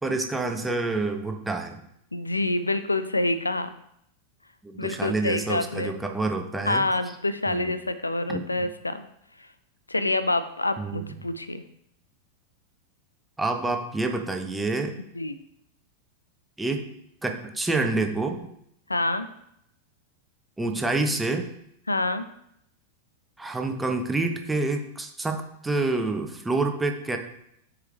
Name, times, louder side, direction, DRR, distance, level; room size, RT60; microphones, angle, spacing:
voice 1, 0.0-1.8 4.6-6.8 7.5-7.7 8.3-8.7 10.8-11.0 13.4-14.9 16.6-16.8 17.2-18.4 20.6-21.5 23.4-27.2, right 3 dB, 10° right, 4 dB, 0.8 m, -27 dB
voice 2, 2.1-3.7 4.8-6.0 6.7-9.0 9.9-11.6 15.2-15.3 18.9-19.3 21.9-22.3, left 2 dB, 80° left, 12 dB, 0.4 m, -27 dB
8.0 x 4.9 x 3.3 m, 0.75 s
figure-of-eight pair, 90°, 0 cm